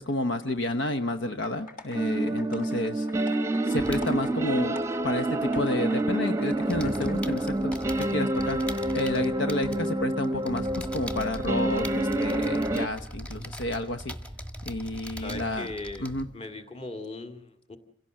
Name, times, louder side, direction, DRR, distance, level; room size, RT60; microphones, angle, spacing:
voice 1, 0.0-4.8 5.0-14.2 14.6-15.7 16.0-16.3, left 1 dB, 65° left, 9 dB, 0.9 m, -31 dB
sound 1, 1.4-7.4 7.7-7.8, left 3 dB, 45° left, 5.8 m, -47 dB
sound 2, 1.9-12.9, right 1 dB, 15° right, 0.9 m, -28 dB
sound 3, 3.7-6.0 6.3-16.4, equal, 5° left, 1.4 m, -41 dB
voice 2, 15.2-17.8, left 2 dB, 30° left, 6 dB, 2.0 m, -39 dB
27.5 x 17.0 x 7.6 m, 0.65 s
head